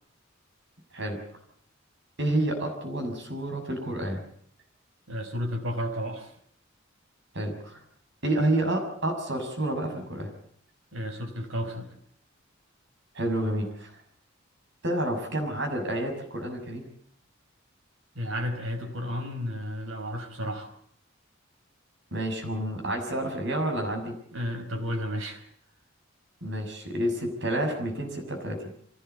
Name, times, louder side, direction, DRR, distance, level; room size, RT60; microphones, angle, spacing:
voice 1, 2.2-4.2 7.3-7.8 8.2-10.3 13.1-14.0 14.8-16.9 22.1-24.2 26.4-28.6, right 1 dB, 60° right, 4 dB, 6.6 m, -29 dB
voice 2, 5.1-6.3 10.9-11.9 18.1-20.8 24.3-25.4, equal, 80° right, 4 dB, 5.0 m, -32 dB
24.5 x 17.0 x 8.1 m, 0.66 s
head